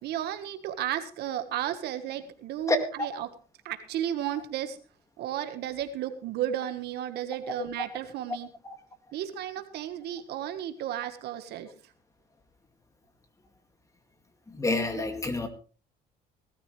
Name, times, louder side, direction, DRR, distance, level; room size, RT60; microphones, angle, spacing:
voice 1, 0.0-3.3 3.6-4.8 5.2-8.5 9.1-11.9 14.9-15.0, right 11 dB, 75° right, 9 dB, 1.6 m, -33 dB
voice 2, 2.7-3.1 7.5-7.6 14.5-15.5, left 2 dB, 20° left, 7 dB, 2.4 m, -28 dB
18.5 x 13.5 x 3.3 m, 0.37 s
cardioid pair, 110°, 17 cm